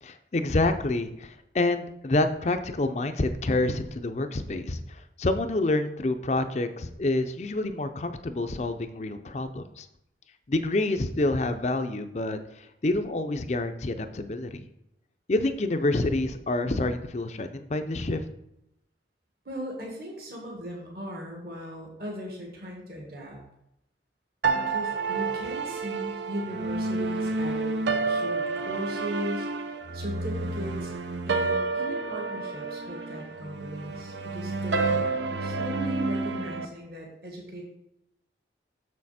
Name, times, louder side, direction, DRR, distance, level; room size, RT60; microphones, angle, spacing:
voice 1, 0.0-9.9 10.5-12.4 12.8-14.7 15.3-18.2, left 2 dB, 40° left, 8 dB, 0.5 m, -27 dB
voice 2, 19.5-23.4 24.5-27.8 28.1-29.5 29.9-30.9 31.3-35.1 35.4-37.6, equal, 55° right, -1 dB, 1.8 m, -38 dB
sound 1, 24.4-36.7, right 3 dB, 75° right, 0.6 m, -29 dB
6.7 x 6.5 x 4.2 m, 0.81 s
head